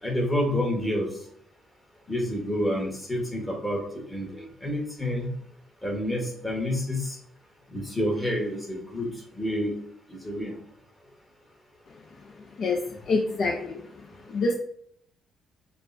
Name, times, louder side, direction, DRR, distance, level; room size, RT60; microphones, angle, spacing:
voice 1, 0.0-1.1 2.1-5.3 5.8-7.2 7.7-9.7 10.1-10.6, left 1 dB, 15° left, -1 dB, 1.3 m, -29 dB
voice 2, 13.1-13.8 14.3-14.5, left 3 dB, 60° left, 1 dB, 0.5 m, -25 dB
6.4 x 2.2 x 2.6 m, 0.66 s
cardioid pair, 90°, 0 cm